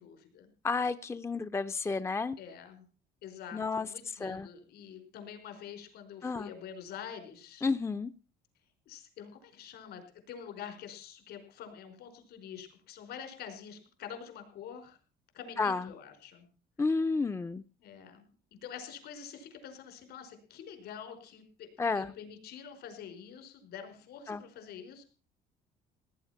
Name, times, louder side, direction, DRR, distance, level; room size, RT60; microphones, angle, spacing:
voice 1, 0.0-0.5 2.4-2.8 3.2-7.7 8.9-15.0 15.3-16.4 17.8-18.3 18.6-25.0, left 8 dB, 75° left, 7 dB, 5.0 m, -46 dB
voice 2, 0.6-2.4 3.5-3.9 4.2-4.5 6.2-6.5 7.6-8.1 15.6-15.8 16.8-17.6 21.8-22.1 24.3-24.4, left 4 dB, 15° left, 12 dB, 0.6 m, -31 dB
17.5 x 9.8 x 5.9 m, 0.38 s
cardioid pair, 110°, 17 cm